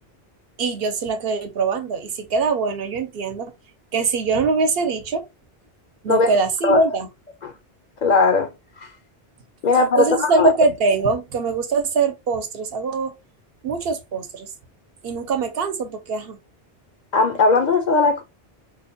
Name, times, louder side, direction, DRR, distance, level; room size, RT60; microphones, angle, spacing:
voice 1, 0.6-3.5 3.9-5.2 6.0-7.1 10.0-13.1 13.6-14.5 15.0-16.4, right 4 dB, 65° right, 0.9 m, -22 dB
voice 2, 8.0-8.5 8.8-8.9 9.6-10.5 17.1-18.2, left 3 dB, 55° left, 0.6 m, -18 dB
4.7 x 2.2 x 2.6 m
omnidirectional pair, 1.1 m